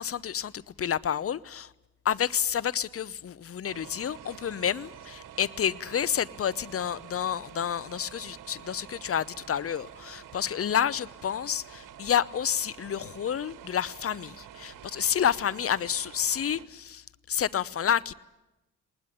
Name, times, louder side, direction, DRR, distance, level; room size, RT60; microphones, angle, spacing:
voice 1, 0.0-1.7 2.0-18.1, left 9 dB, 40° left, 21 dB, 0.8 m, -29 dB
sound 1, 3.6-16.6, right 10 dB, 55° right, 1.6 m, -48 dB
20.5 x 19.5 x 10.0 m, 1.0 s
hypercardioid pair, 40°, 38 cm